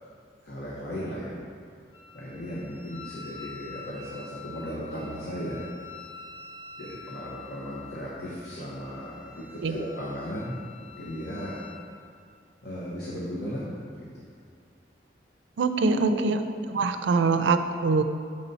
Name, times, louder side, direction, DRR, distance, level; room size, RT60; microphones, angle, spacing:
voice 1, 0.4-1.4 2.1-5.7 6.8-11.6 12.6-14.2 15.8-16.3, equal, 60° left, -7 dB, 1.1 m, -35 dB
Wind instrument woodwind instrument, 1.9-11.9, left 5 dB, 25° left, 0.9 m, -46 dB
voice 2, 15.6-16.4 16.7-18.0, right 4 dB, 85° right, 9 dB, 0.4 m, -24 dB
6.5 x 4.0 x 5.5 m, 2.3 s
head